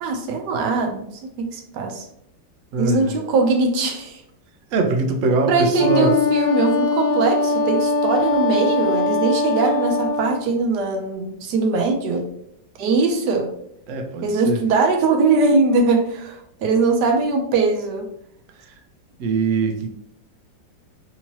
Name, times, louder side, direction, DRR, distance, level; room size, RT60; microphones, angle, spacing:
voice 1, 0.0-2.1 2.8-4.2 5.5-12.2 12.8-13.5 14.2-18.0, right 3 dB, 70° right, 4 dB, 1.1 m, -21 dB
voice 2, 2.7-3.1 4.7-6.1 13.9-14.6 18.6-18.7 19.2-19.9, right 3 dB, 85° right, 4 dB, 0.6 m, -22 dB
Wind instrument woodwind instrument, 5.8-10.4, left 3 dB, 90° left, 0.7 m, -21 dB
3.6 x 2.8 x 2.9 m, 0.73 s
omnidirectional pair, 2.0 m